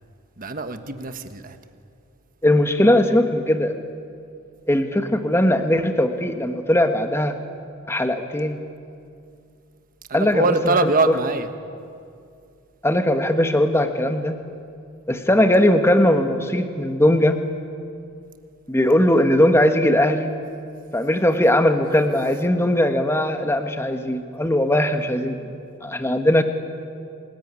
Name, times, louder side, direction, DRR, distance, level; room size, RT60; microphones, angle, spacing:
voice 1, 0.4-1.6 10.1-11.5, right 3 dB, 40° right, 8 dB, 1.4 m, -23 dB
voice 2, 2.4-3.7 4.7-7.4 7.9-8.6 10.1-10.9 12.8-14.4 15.1-17.4 18.7-20.3 20.9-25.5 25.8-26.4, left 1 dB, 10° left, 7 dB, 1.5 m, -19 dB
28.0 x 20.0 x 9.7 m, 2.4 s
head